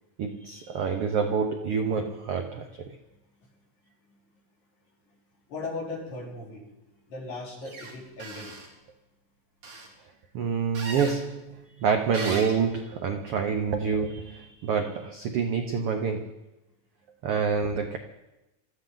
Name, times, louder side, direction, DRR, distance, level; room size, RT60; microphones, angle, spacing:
voice 1, 0.2-3.0 10.3-16.3 17.2-18.0, right 6 dB, 90° right, 5 dB, 1.2 m, -27 dB
voice 2, 5.5-6.7 7.1-8.6, left 3 dB, 75° left, -5 dB, 5.9 m, -37 dB
sound 1, 7.6-8.7 9.6-9.9 10.7-11.2 12.1-12.6, right 3 dB, 55° right, 4.2 m, -37 dB
26.0 x 14.0 x 3.9 m, 1.0 s
omnidirectional pair, 3.9 m